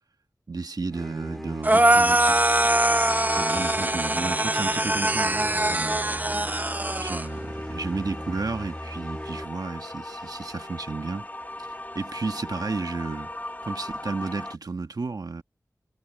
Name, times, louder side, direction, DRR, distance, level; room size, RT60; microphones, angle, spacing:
voice 1, 0.5-2.4 3.3-6.0 7.0-11.3 11.9-13.3 13.6-15.4, right 4 dB, 70° right, 1.3 m, -32 dB
sound 1, 0.9-9.4, equal, 5° left, 3.6 m, -38 dB
sound 2, 1.6-7.3, right 1 dB, 25° right, 0.7 m, -22 dB
sound 3, 2.7-14.6, left 1 dB, 25° left, 2.3 m, -40 dB
cardioid pair, 40°, 7 cm